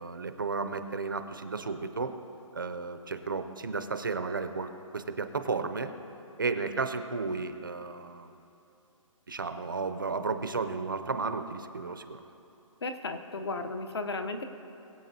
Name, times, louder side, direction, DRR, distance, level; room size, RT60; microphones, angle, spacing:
voice 1, 0.0-2.2 2.5-5.9 6.4-8.3 9.3-12.2, right 4 dB, 40° right, 8 dB, 0.5 m, -33 dB
voice 2, 12.8-14.4, left 3 dB, 50° left, 8 dB, 0.7 m, -34 dB
22.0 x 8.1 x 2.7 m, 2.8 s
hypercardioid pair, 180°, 17 cm